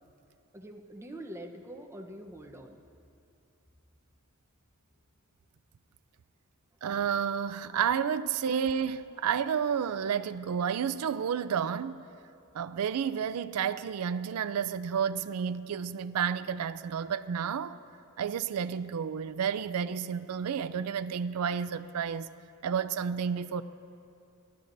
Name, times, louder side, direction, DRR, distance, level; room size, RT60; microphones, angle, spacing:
voice 1, 0.5-2.8, right 1 dB, 10° right, 0.8 m, -44 dB
voice 2, 6.8-12.0 12.5-17.8 18.2-22.3 22.6-23.6, right 7 dB, 80° right, 0.4 m, -31 dB
29.5 x 12.5 x 2.6 m
head